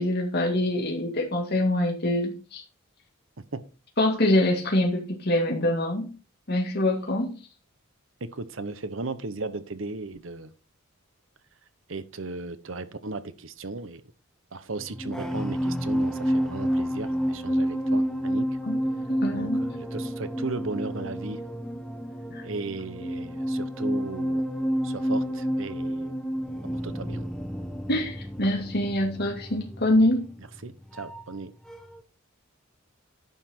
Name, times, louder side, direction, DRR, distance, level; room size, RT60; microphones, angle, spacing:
voice 1, 0.0-2.6 4.0-6.1 6.5-7.3 18.7-18.8 19.2-19.6 22.3-22.4 27.9-30.3, left 1 dB, 50° left, 2.0 m, -25 dB
voice 2, 8.2-10.5 11.9-14.0 14.5-18.5 19.3-21.4 22.4-24.4 24.8-26.1 26.7-27.2 30.6-31.5, right 3 dB, 65° right, 0.9 m, -36 dB
sound 1, 14.8-31.4 31.7-32.0, equal, 5° left, 0.9 m, -30 dB
10.5 x 5.8 x 4.4 m
head